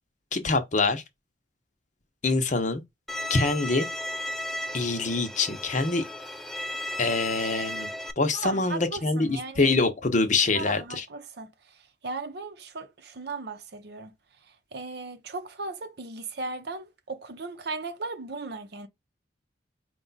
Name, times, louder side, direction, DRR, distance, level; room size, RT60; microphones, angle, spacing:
voice 1, 0.3-1.0 2.2-2.8 3.3-3.9 4.7-6.0 7.0-7.9 8.2-11.0, left 3 dB, 40° left, 0.7 m, -25 dB
Bowed string instrument, 3.1-8.1, left 1 dB, ahead, 0.3 m, -35 dB
voice 2, 8.3-9.7 10.5-14.1 14.4-18.9, right 3 dB, 60° right, 0.7 m, -37 dB
4.8 x 2.3 x 3.9 m
head